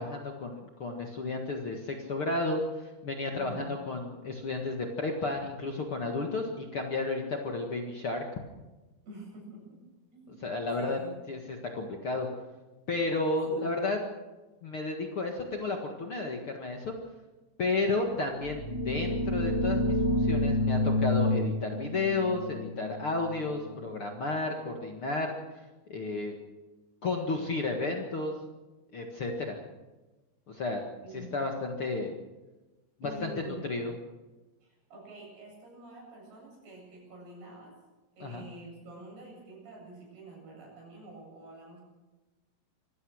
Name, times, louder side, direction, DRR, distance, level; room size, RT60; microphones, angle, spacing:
voice 1, 0.0-8.2 10.4-11.0 11.3-12.3 12.9-14.0 14.6-16.9 17.6-25.3 25.9-26.3 27.0-28.3 28.9-29.6 30.5-30.8 31.1-32.1 33.0-33.3 33.7-33.9 38.2-38.4, left 3 dB, 45° left, 2 dB, 1.9 m, -32 dB
voice 2, 3.3-3.7 9.1-9.8 10.1-10.4 10.8-11.2 13.5-13.8 31.0-31.3 33.0-33.7 34.6-37.7 38.1-41.8, right 2 dB, 80° right, -1 dB, 10.0 m, -47 dB
sound 1, 18.4-24.0, left 1 dB, 20° left, 2.3 m, -29 dB
25.0 x 16.5 x 6.4 m, 1.1 s
omnidirectional pair, 4.6 m